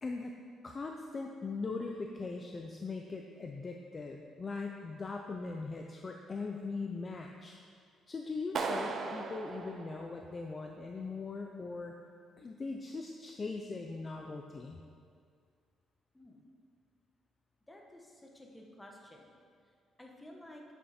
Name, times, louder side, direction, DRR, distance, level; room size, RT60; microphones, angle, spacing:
voice 1, 0.0-0.3 0.6-7.6 8.1-11.9 12.4-14.8, left 3 dB, 30° left, 2 dB, 0.5 m, -40 dB
Clapping, 8.6-10.6, right 4 dB, 50° right, 0.6 m, -38 dB
voice 2, 17.7-19.3 20.0-20.6, left 1 dB, 10° left, 0 dB, 1.2 m, -53 dB
8.1 x 8.0 x 4.3 m, 2.2 s
cardioid pair, 115°, 0 cm